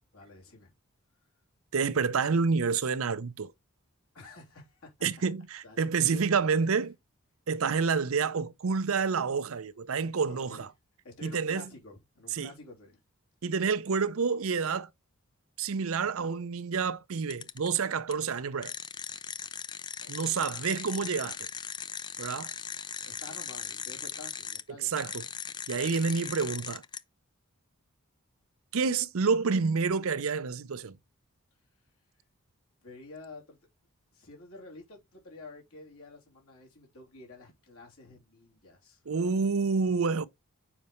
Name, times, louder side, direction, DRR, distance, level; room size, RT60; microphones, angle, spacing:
voice 1, 0.1-0.7 4.1-5.3 5.6-6.5 10.2-10.7 11.0-13.0 20.0-20.4 23.0-25.0 32.8-33.6 34.1-39.0, left 2 dB, 75° left, 3.2 m, -50 dB
voice 2, 1.7-3.5 5.0-6.9 7.5-10.7 11.2-11.6 12.3-12.5 13.4-14.9 15.6-18.7 20.1-21.5 22.2-22.5 24.8-25.2 25.7-26.8 28.7-31.0 39.1-40.3, right 5 dB, 65° right, 0.6 m, -28 dB
sound 1, 17.3-17.8 18.1-18.2 18.6-24.6 25.0-27.0, left 7 dB, 20° left, 0.3 m, -39 dB
7.1 x 5.3 x 3.1 m
head